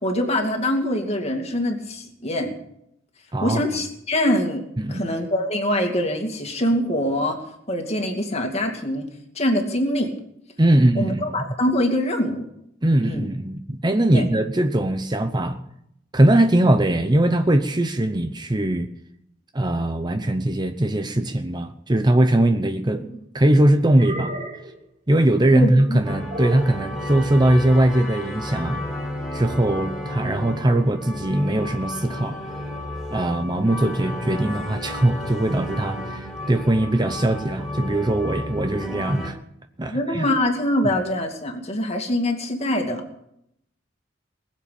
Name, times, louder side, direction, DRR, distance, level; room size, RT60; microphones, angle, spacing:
voice 1, 0.0-2.5 3.4-4.6 4.9-7.4 7.7-9.0 9.3-10.1 10.9-12.5 13.0-13.3 14.1-14.3 25.5-26.0 39.9-43.0, left 1 dB, 35° left, 3 dB, 2.5 m, -24 dB
voice 2, 10.6-11.3 12.8-15.6 16.1-18.9 19.5-23.0 23.3-24.3 25.1-28.8 29.3-32.4 33.1-39.4 39.8-40.3, right 1 dB, 20° right, 8 dB, 0.8 m, -20 dB
sound 1, 22.4-23.2 23.9-24.8 26.3-26.8, right 1 dB, 40° right, 4.0 m, -34 dB
sound 2, 26.0-39.3, left 1 dB, ahead, 4.3 m, -33 dB
20.5 x 7.6 x 8.7 m, 0.76 s
head